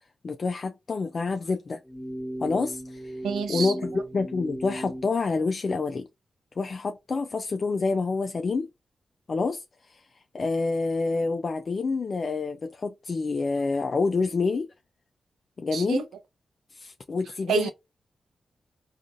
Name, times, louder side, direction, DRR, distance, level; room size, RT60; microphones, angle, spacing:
voice 1, 0.2-1.8 2.4-3.1 3.5-6.1 6.6-8.7 9.3-9.6 9.9-10.0 10.3-14.7 15.6-16.0 16.7-17.7, left 4 dB, 55° left, 0.3 m, -27 dB
sound 1, 1.8-5.1, equal, 5° left, 1.2 m, -36 dB
voice 2, 3.2-3.7 15.7-16.0 17.5-17.7, right 6 dB, 85° right, 0.6 m, -27 dB
3.6 x 2.4 x 2.5 m
supercardioid pair, 40°, 0 cm